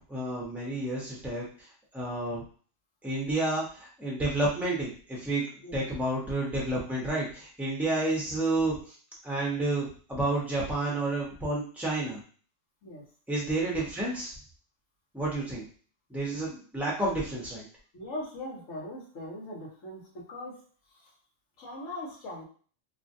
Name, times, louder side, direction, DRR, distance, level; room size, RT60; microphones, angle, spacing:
voice 1, 0.1-1.5 1.9-2.4 3.0-5.4 5.7-8.8 9.2-12.2 13.3-14.3 15.1-15.7 16.1-17.6, right 2 dB, ahead, -4 dB, 0.8 m, -30 dB
voice 2, 17.9-20.6 20.9-21.1 21.6-22.4, left 1 dB, 80° left, -4 dB, 1.5 m, -40 dB
3.1 x 2.4 x 2.6 m, 0.42 s
omnidirectional pair, 1.3 m